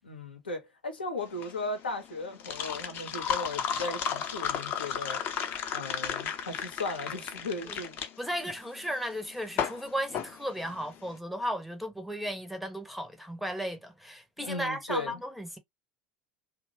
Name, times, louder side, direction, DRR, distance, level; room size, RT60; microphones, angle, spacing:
voice 1, 0.0-5.2 5.7-8.0 14.4-15.2, left 2 dB, 80° left, 0.8 m, -36 dB
sound 1, 1.2-11.1, left 8 dB, 40° left, 0.6 m, -34 dB
voice 2, 8.2-15.6, equal, ahead, 0.6 m, -35 dB
2.7 x 2.1 x 3.1 m
figure-of-eight pair, 75°, 5 cm